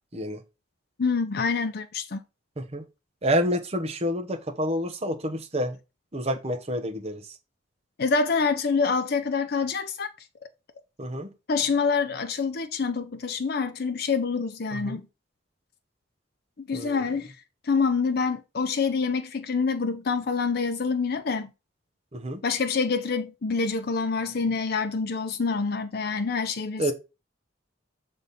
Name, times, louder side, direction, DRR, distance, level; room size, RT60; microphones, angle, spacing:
voice 1, 1.0-2.2 8.0-10.1 11.5-15.0 16.6-17.3 17.6-21.5 22.4-26.8, left 4 dB, 55° left, 0.6 m, -26 dB
voice 2, 3.2-5.8 6.1-7.2 11.0-11.3 14.7-15.0 16.7-17.0 22.1-22.4 26.8-26.9, equal, 35° right, 1.1 m, -28 dB
6.8 x 3.7 x 4.2 m
head